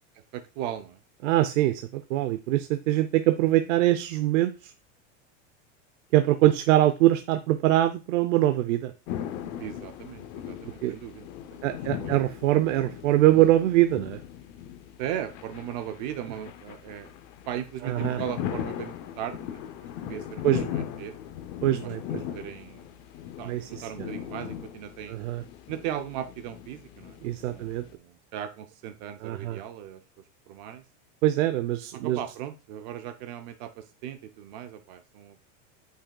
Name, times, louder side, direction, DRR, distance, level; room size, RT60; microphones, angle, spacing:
voice 1, 0.3-1.0 9.6-12.2 13.3-13.5 15.0-17.1 17.5-19.6 20.1-21.2 21.8-21.9 22.3-22.9 23.4-25.2 25.7-27.2 27.5-30.0 30.5-30.8 31.9-35.4, right 10 dB, 40° right, 9 dB, 0.5 m, -38 dB
voice 2, 1.2-4.7 6.1-8.9 10.8-11.0 11.6-14.2 17.8-18.2 20.4-20.7 21.6-22.4 23.4-24.1 25.1-25.4 27.2-27.8 29.2-29.6 31.2-32.2, right 14 dB, 80° right, 10 dB, 0.6 m, -23 dB
sound 1, 9.1-27.9, left 10 dB, 30° left, 0.5 m, -38 dB
8.7 x 5.6 x 2.2 m, 0.30 s
supercardioid pair, 175°, 38 cm